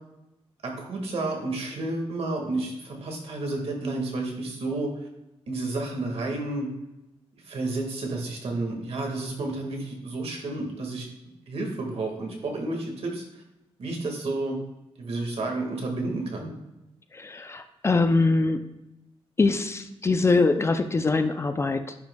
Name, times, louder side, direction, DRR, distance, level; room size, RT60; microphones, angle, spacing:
voice 1, 0.6-5.1 5.5-6.7 7.4-11.1 11.5-13.4 13.8-14.6 15.0-16.5, right 2 dB, 70° right, 1 dB, 1.8 m, -31 dB
voice 2, 17.1-18.6 19.4-21.9, left 3 dB, 25° left, 8 dB, 0.4 m, -23 dB
10.0 x 5.9 x 2.2 m, 0.95 s
wide cardioid pair, 170°, 11 cm